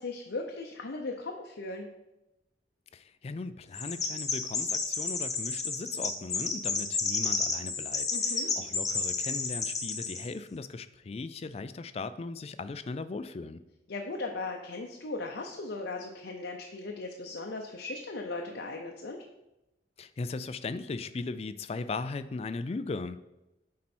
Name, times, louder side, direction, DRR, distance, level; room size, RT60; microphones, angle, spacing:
voice 1, 0.0-1.9 8.1-8.5 13.9-19.2, left 3 dB, 80° left, 1 dB, 0.6 m, -37 dB
voice 2, 2.9-13.6 20.0-23.2, left 3 dB, 35° left, 12 dB, 0.3 m, -38 dB
Chirp tweet, 3.7-10.3, left 4 dB, 20° left, 0.8 m, -31 dB
7.5 x 4.3 x 4.3 m, 0.94 s
head